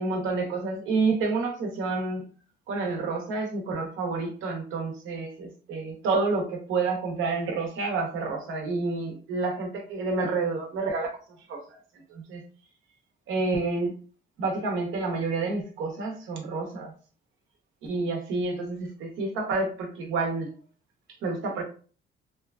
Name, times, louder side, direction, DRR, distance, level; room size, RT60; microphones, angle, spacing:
voice 1, 0.0-2.2 2.7-11.8 12.1-12.4 13.3-13.9 14.4-16.9 17.8-20.5 21.2-21.6, right 3 dB, 85° right, 2 dB, 0.8 m, -29 dB
2.8 x 2.4 x 2.2 m, 0.41 s
cardioid pair, 90°, 20 cm